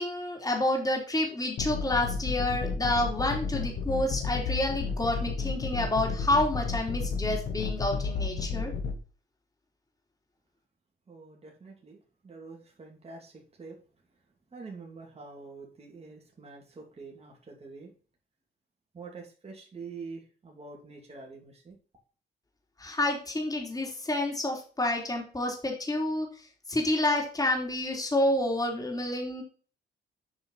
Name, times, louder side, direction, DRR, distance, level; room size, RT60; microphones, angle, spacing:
voice 1, 0.0-8.7 22.8-29.4, left 1 dB, 20° left, 1 dB, 3.2 m, -29 dB
sound 1, 1.6-9.0, left 5 dB, 65° left, 1.8 m, -32 dB
voice 2, 11.1-13.8 14.5-17.9 18.9-21.8, right 4 dB, 30° right, 0 dB, 2.8 m, -46 dB
8.2 x 4.9 x 5.6 m, 0.38 s
cardioid pair, 90°, 20 cm